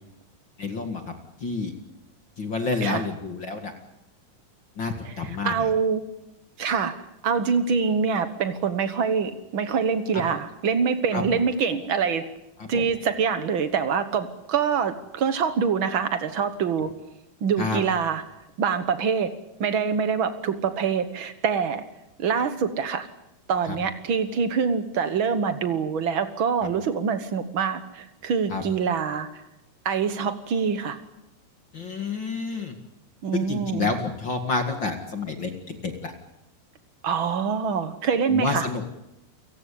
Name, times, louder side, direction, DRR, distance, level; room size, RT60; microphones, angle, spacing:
voice 1, 0.6-1.1 1.4-1.7 2.4-3.7 4.8-5.5 11.1-11.2 12.6-12.9 17.6-17.8 23.7-23.8 28.5-28.6 31.7-32.7 33.3-36.1 38.3-38.8, left 4 dB, 40° left, 5 dB, 2.1 m, -29 dB
voice 2, 5.0-6.0 6.6-6.9 7.2-12.2 12.7-16.9 17.4-18.2 18.6-19.3 19.6-21.8 22.2-23.1 23.5-29.3 29.8-31.0 33.2-33.9 37.0-38.7, right 6 dB, 85° right, 10 dB, 1.1 m, -25 dB
30.0 x 18.0 x 8.6 m, 0.91 s
omnidirectional pair, 4.3 m